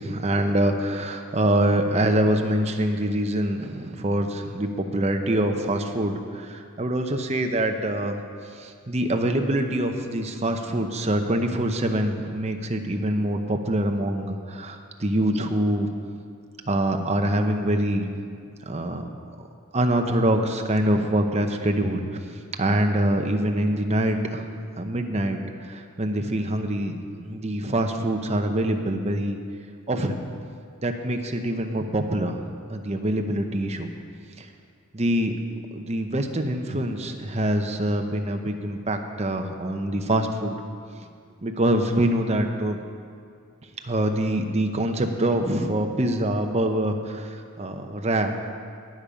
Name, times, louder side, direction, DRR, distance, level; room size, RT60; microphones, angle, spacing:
voice 1, 0.0-8.2 8.5-15.9 16.7-18.2 18.7-19.1 19.7-22.0 22.6-24.5 24.8-29.4 29.9-30.2 30.8-32.4 32.7-33.9 34.4-34.5 34.9-35.3 35.7-40.6 41.4-42.8 43.8-48.3, right 1 dB, 30° right, 5 dB, 0.8 m, -25 dB
18.5 x 7.1 x 5.1 m, 2.2 s
head